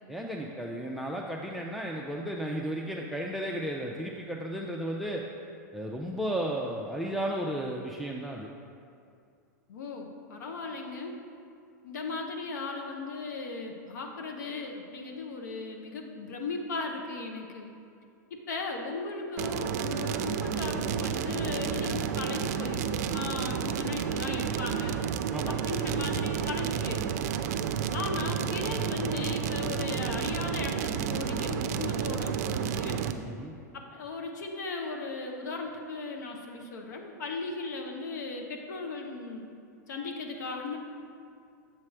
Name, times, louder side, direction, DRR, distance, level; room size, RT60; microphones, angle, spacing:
voice 1, 0.1-5.2 5.7-8.5 25.3-25.6 33.2-33.5, right 1 dB, ahead, -1 dB, 0.4 m, -34 dB
voice 2, 9.7-11.2 11.8-17.7 18.3-25.0 25.5-27.0 27.9-33.0 33.7-39.5 39.9-40.8, left 3 dB, 75° left, 2 dB, 0.7 m, -37 dB
sound 1, 19.4-33.1, right 8 dB, 60° right, 0.4 m, -31 dB
7.5 x 3.2 x 6.0 m, 2.4 s
hypercardioid pair, 115°, 10 cm